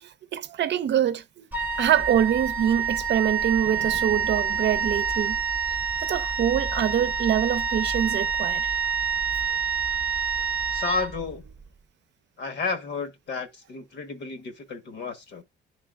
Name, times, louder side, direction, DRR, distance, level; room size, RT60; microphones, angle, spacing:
voice 1, 0.3-1.4 1.8-5.4 6.0-8.7, right 10 dB, 60° right, 0.6 m, -24 dB
Wind instrument woodwind instrument, 1.5-11.6, right 6 dB, 10° right, 0.8 m, -27 dB
voice 2, 10.7-11.4 12.4-15.4, left 4 dB, 60° left, 1.3 m, -32 dB
11.0 x 3.8 x 2.4 m
cardioid pair, 90°, 20 cm